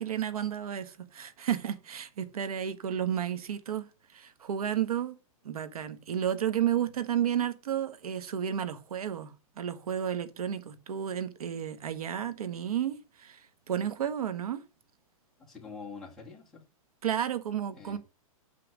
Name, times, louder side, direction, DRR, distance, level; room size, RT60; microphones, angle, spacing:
voice 1, 0.0-3.9 4.1-5.2 5.4-14.6 17.0-18.0, right 9 dB, 85° right, 1.5 m, -32 dB
voice 2, 15.4-16.6 17.7-18.0, left 5 dB, ahead, 2.4 m, -45 dB
7.8 x 5.9 x 6.2 m
hypercardioid pair, 175°, 18 cm